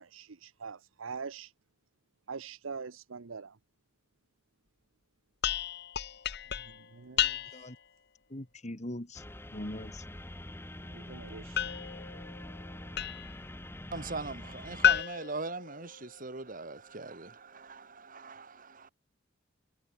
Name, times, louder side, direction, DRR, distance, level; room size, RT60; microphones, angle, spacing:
voice 1, 0.0-1.5 2.3-3.6 6.6-7.4 10.8-11.6, right 5 dB, 90° right, 0.8 m, -43 dB
sound 1, 5.4-7.8 11.6-13.4 14.8-16.3, left 9 dB, 55° left, 1.0 m, -32 dB
voice 2, 8.3-9.2 9.5-10.1, left 1 dB, 35° left, 2.2 m, -40 dB
sound 2, 9.1-15.0, left 1 dB, 10° left, 1.3 m, -45 dB
voice 3, 13.9-18.9, right 3 dB, 45° right, 2.2 m, -41 dB
head